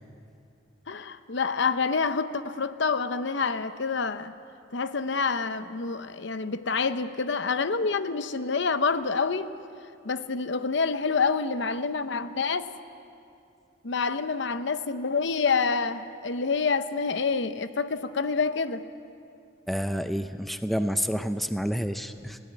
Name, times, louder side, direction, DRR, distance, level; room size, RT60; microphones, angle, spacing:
voice 1, 0.9-4.3 4.7-9.5 10.0-12.7 13.8-18.9, left 4 dB, 60° left, 12 dB, 0.8 m, -27 dB
voice 2, 19.7-22.4, equal, ahead, 9 dB, 0.5 m, -29 dB
20.0 x 17.5 x 9.0 m, 2.5 s
head